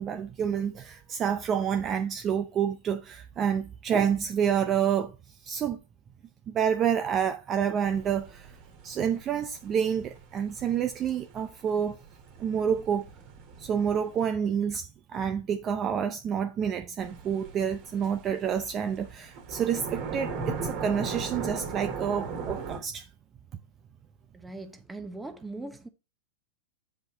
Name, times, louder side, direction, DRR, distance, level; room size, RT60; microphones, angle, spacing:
voice 1, 0.0-5.2 5.4-5.8 6.5-8.5 8.8-12.0 12.4-13.1 13.6-23.1, right 8 dB, 30° right, 0.5 m, -28 dB
sound 1, 7.9-14.2 17.0-22.8, right 4 dB, 45° right, 2.2 m, -38 dB
voice 2, 24.4-25.9, right 2 dB, 5° right, 1.0 m, -40 dB
7.8 x 5.1 x 3.8 m
hypercardioid pair, 130°, 0 cm